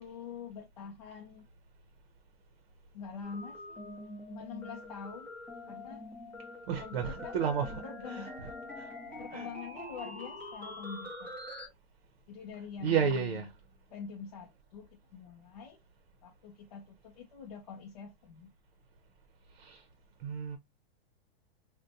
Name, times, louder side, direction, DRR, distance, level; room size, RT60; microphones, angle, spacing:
voice 1, 0.0-1.5 2.9-3.8 4.3-5.3 5.7-6.0 6.8-7.4 7.8-8.4 9.2-11.3 12.3-13.5 13.9-15.8 16.2-18.5, left 6 dB, 40° left, 0.5 m, -45 dB
sound 1, 3.2-11.7, left 1 dB, 5° left, 0.7 m, -44 dB
voice 2, 6.7-8.5 8.8-8.9 9.3-9.5 12.8-13.5 19.5-19.8 20.2-20.6, right 7 dB, 60° right, 0.7 m, -32 dB
4.0 x 2.2 x 2.6 m
supercardioid pair, 175°, 30 cm